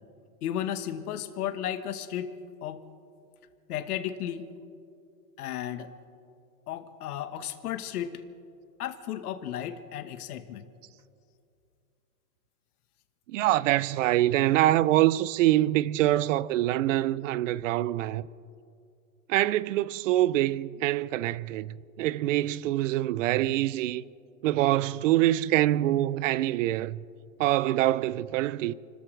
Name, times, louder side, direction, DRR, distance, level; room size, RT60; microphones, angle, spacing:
voice 1, 0.4-2.3 2.6-2.8 3.7-4.5 5.4-5.9 6.7-8.2 8.8-10.6, left 10 dB, 70° left, 1.4 m, -34 dB
voice 2, 13.3-18.2 19.3-24.0 24.4-27.0 27.4-28.7, right 14 dB, 55° right, 0.5 m, -25 dB
30.0 x 13.5 x 3.3 m
hypercardioid pair, 145°, 47 cm